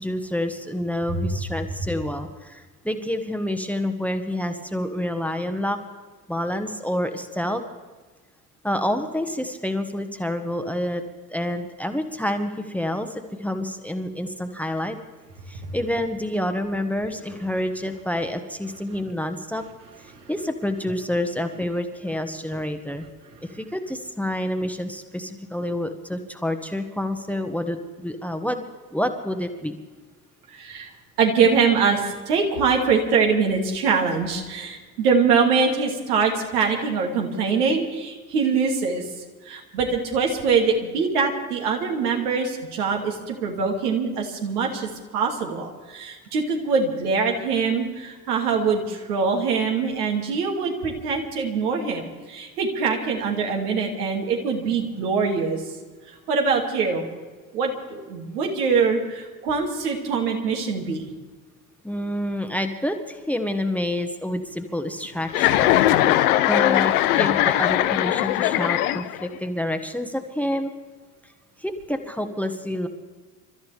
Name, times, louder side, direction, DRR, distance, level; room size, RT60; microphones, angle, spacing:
voice 1, 0.0-5.8 6.3-7.6 8.6-11.0 11.3-15.0 15.5-19.6 20.0-23.1 23.4-28.6 28.9-29.8 61.8-66.1 66.5-70.7 71.6-72.9, left 1 dB, 5° left, 7 dB, 1.4 m, -28 dB
voice 2, 30.5-30.9 31.2-39.0 39.5-55.6 56.3-57.0 57.5-61.1, right 5 dB, 70° right, 1 dB, 2.5 m, -23 dB
Chuckle chortle, 65.3-69.4, left 14 dB, 65° left, 0.9 m, -20 dB
29.0 x 13.5 x 3.4 m, 1.3 s
figure-of-eight pair, 55°, 47 cm